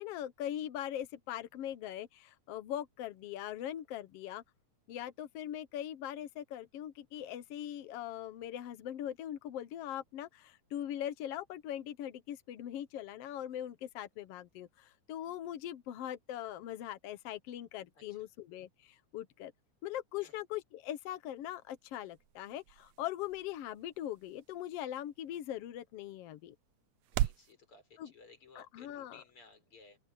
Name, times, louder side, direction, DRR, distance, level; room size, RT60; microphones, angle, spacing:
voice 1, 0.0-4.4 4.9-19.5 19.8-26.5 28.0-28.1 28.5-29.2, left 11 dB, 70° left, 1.5 m, -41 dB
sound 1, 21.3-27.5, right 14 dB, 80° right, 1.6 m, -42 dB
voice 2, 27.1-30.0, left 3 dB, 40° left, 6.4 m, -59 dB
open air
omnidirectional pair, 3.7 m